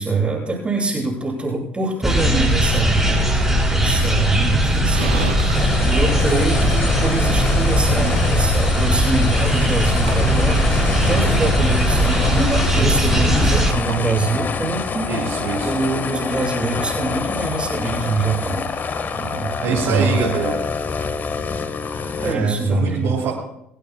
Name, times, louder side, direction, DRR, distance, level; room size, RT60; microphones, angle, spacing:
voice 1, 0.0-3.4 3.7-5.6 5.8-15.4 15.6-18.7 19.2-20.2 22.2-23.1, right 3 dB, 20° right, -4 dB, 7.9 m, -24 dB
sound 1, 2.0-13.7, equal, 5° right, 7.1 m, -18 dB
Livestock farm animals working animals, 4.6-15.8, right 6 dB, 80° right, 3.8 m, -38 dB
sound 2, 5.5-22.4, left 5 dB, 35° left, 1.6 m, -26 dB
voice 2, 15.1-15.7 19.6-20.6 21.8-23.3, right 5 dB, 60° right, -7 dB, 7.3 m, -24 dB
28.0 x 18.5 x 2.3 m, 0.75 s
hypercardioid pair, 60°, 5 cm